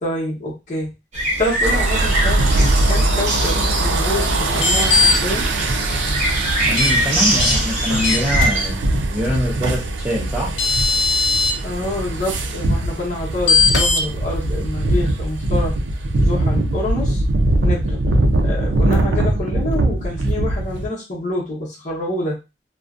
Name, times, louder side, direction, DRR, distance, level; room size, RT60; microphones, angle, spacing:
voice 1, 0.0-0.9 1.4-2.5 2.7-5.4 11.5-15.7 16.2-17.2 17.6-18.0 18.4-22.4, left 1 dB, 45° left, -4 dB, 0.9 m, -27 dB
sound 1, 1.1-8.7, right 1 dB, 40° right, 0.8 m, -23 dB
sound 2, 1.6-20.9, right 2 dB, 75° right, 0.4 m, -21 dB
sound 3, 4.6-5.1 6.8-6.9 7.4-7.5 8.0-8.5 10.1-10.2 10.6-11.5 13.5-14.0, left 4 dB, 85° left, 0.6 m, -17 dB
voice 2, 6.6-10.5, left 1 dB, 5° right, -6 dB, 0.5 m, -24 dB
2.5 x 2.2 x 2.4 m, 0.27 s
head